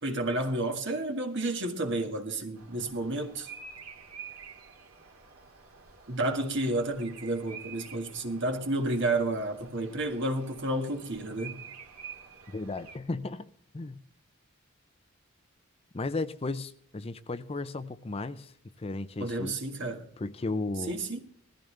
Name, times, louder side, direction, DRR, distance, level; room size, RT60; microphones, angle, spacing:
voice 1, 0.0-3.5 6.1-11.6 19.2-20.1 20.9-21.2, right 2 dB, 55° right, 1.7 m, -31 dB
Bird vocalization bird call bird song, 2.6-13.0, right 6 dB, 85° right, 2.3 m, -49 dB
voice 2, 12.5-14.0 15.9-19.6 20.2-20.9, left 3 dB, 25° left, 0.5 m, -35 dB
19.0 x 14.0 x 3.3 m
head